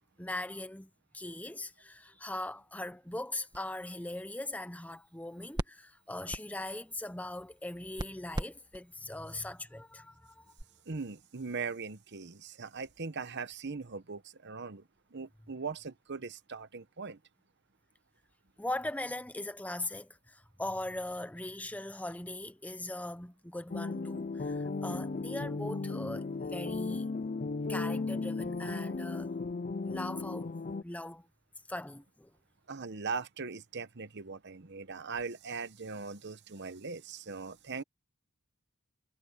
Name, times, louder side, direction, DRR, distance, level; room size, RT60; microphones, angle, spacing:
voice 1, 0.2-10.5 18.6-27.1 27.7-29.3 29.8-30.5 30.8-31.3 31.7-32.3, left 1 dB, 5° left, 0.7 m, -40 dB
sound 1, 3.1-10.6, right 1 dB, 20° right, 1.5 m, -45 dB
voice 2, 10.9-17.2 32.7-37.8, right 4 dB, 55° right, 1.0 m, -40 dB
sound 2, 23.7-30.8, left 3 dB, 40° left, 0.5 m, -35 dB
head